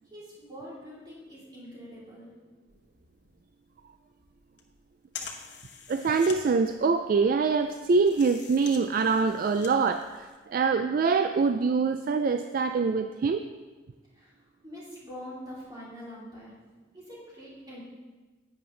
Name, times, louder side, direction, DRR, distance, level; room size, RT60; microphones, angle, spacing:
voice 1, 0.0-2.4 14.1-16.5 16.9-17.8, equal, 25° right, -7 dB, 3.2 m, -44 dB
sound 1, 2.7-10.6, left 6 dB, 65° left, 1.0 m, -46 dB
voice 2, 5.9-13.4, right 4 dB, 50° right, 8 dB, 0.3 m, -24 dB
11.0 x 8.6 x 3.2 m, 1.3 s
head